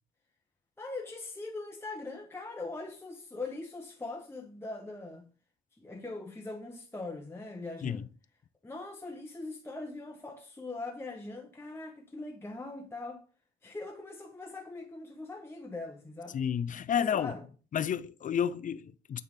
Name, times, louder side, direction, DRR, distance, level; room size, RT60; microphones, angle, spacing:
voice 1, 0.8-5.3 5.7-8.1 8.6-13.2 13.6-16.4 17.0-17.5, left 3 dB, 10° left, 0.9 m, -41 dB
voice 2, 16.3-17.3 17.7-19.2, left 8 dB, 40° left, 0.5 m, -31 dB
8.7 x 3.5 x 3.6 m
cardioid pair, 90°, 20 cm